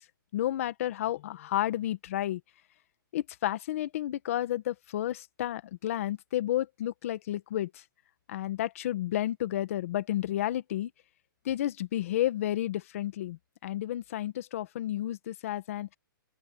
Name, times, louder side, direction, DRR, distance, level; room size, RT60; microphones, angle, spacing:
voice 1, 0.3-2.4 3.1-7.7 8.3-10.9 11.4-16.0, left 13 dB, 40° left, 1.6 m, -31 dB
open air
hypercardioid pair, 170°, 12 cm